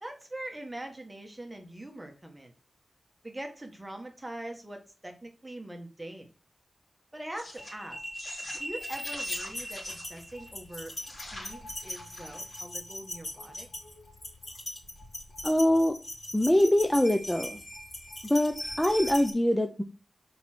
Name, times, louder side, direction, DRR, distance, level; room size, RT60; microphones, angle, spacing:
voice 1, 0.0-2.5 3.2-6.3 7.1-8.0 8.6-10.9 11.3-13.7, right 1 dB, 15° right, 3 dB, 1.5 m, -42 dB
sound 1, 7.4-19.3, left 1 dB, 50° left, 3.3 m, -39 dB
voice 2, 15.4-15.9 16.3-17.6 18.3-19.8, left 1 dB, 10° left, 5 dB, 0.7 m, -24 dB
7.1 x 4.8 x 4.4 m, 0.33 s
wide cardioid pair, 105°, 0 cm